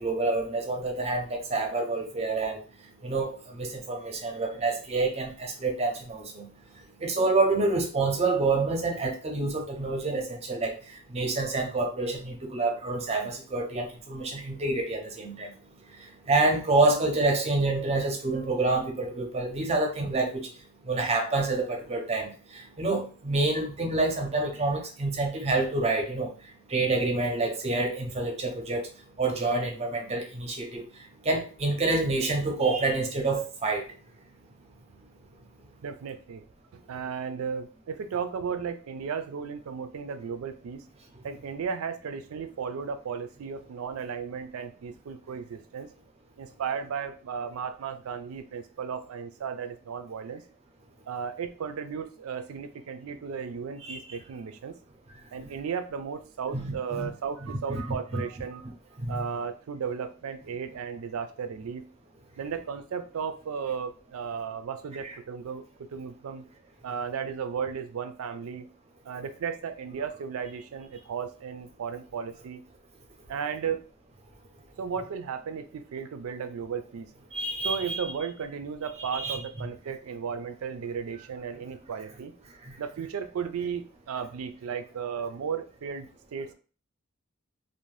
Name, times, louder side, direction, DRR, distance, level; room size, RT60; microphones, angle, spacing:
voice 1, 0.0-2.6 3.0-6.5 7.0-10.8 11.1-15.5 16.3-20.5 20.9-26.3 26.7-28.9 29.2-30.8 31.2-33.9 53.8-54.2 55.4-55.5 56.5-57.1 57.5-58.2 59.0-59.2 65.0-65.1 77.3-78.0 79.0-79.4 82.7-82.8, right 3 dB, 30° right, 3 dB, 0.5 m, -27 dB
voice 2, 35.8-36.4 36.7-40.8 41.2-45.9 46.4-50.4 51.1-54.7 55.3-58.7 59.1-61.9 62.4-65.7 65.9-66.5 66.8-68.7 69.0-72.6 73.3-73.8 74.8-77.1 77.6-82.3 82.8-86.5, right 6 dB, 85° right, 9 dB, 0.4 m, -35 dB
2.6 x 2.1 x 3.1 m, 0.38 s
head